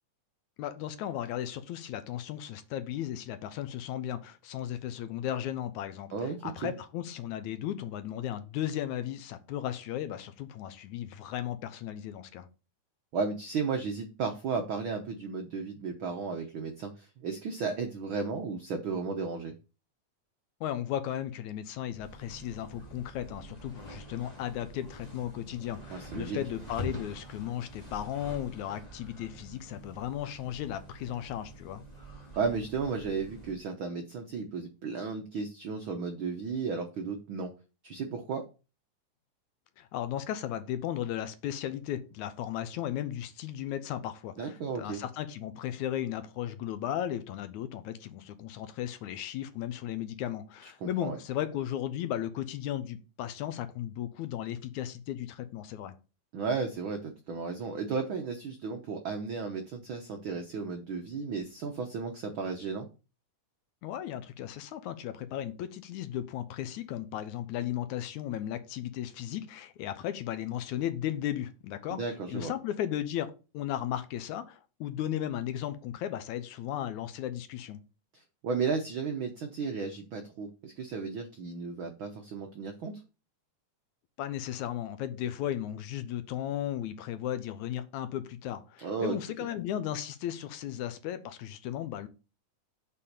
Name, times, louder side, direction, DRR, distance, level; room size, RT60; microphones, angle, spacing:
voice 1, 0.6-12.5 20.6-31.8 39.8-56.0 63.8-72.0 72.3-77.8 84.2-92.1, left 11 dB, 75° left, 11 dB, 2.1 m, -35 dB
voice 2, 13.1-19.5 25.9-26.4 32.4-37.5 37.8-38.4 44.4-45.0 50.6-51.2 56.3-62.9 71.9-72.5 78.1-82.9 88.8-89.1, right 5 dB, 80° right, 5 dB, 1.1 m, -34 dB
sound 1, 21.9-33.6, equal, 15° left, 2.2 m, -46 dB
7.4 x 4.5 x 6.7 m, 0.32 s
omnidirectional pair, 3.6 m